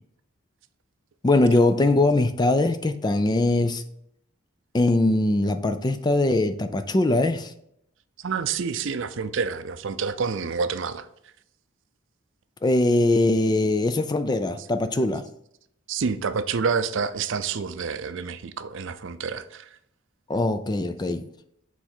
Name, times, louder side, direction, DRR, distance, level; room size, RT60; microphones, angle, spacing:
voice 1, 1.2-3.8 4.7-7.5 12.6-15.2 20.3-21.2, left 2 dB, 20° left, 0.3 m, -21 dB
voice 2, 8.2-11.1 15.9-19.7, right 5 dB, 60° right, 0.5 m, -28 dB
7.0 x 4.2 x 4.4 m
head